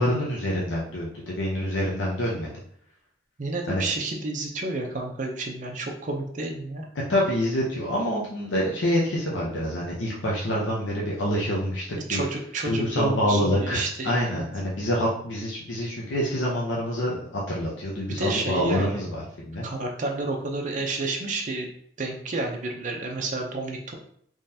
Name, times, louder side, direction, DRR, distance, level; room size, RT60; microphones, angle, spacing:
voice 1, 0.0-2.5 3.7-3.9 7.1-11.8 12.1-12.2 12.6-19.7, equal, 85° left, -4 dB, 0.8 m, -26 dB
voice 2, 3.4-6.9 12.1-14.4 18.2-19.0 19.6-21.7 22.0-23.9, right 3 dB, 45° right, 1 dB, 0.6 m, -30 dB
3.7 x 3.1 x 2.7 m, 0.63 s
head